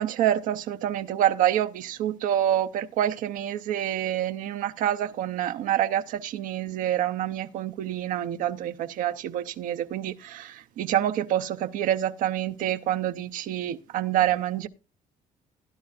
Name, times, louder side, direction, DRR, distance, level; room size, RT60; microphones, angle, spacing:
voice 1, 0.0-14.7, right 11 dB, 80° right, 0.6 m, -27 dB
17.0 x 10.5 x 2.4 m
cardioid pair, 110°, 14 cm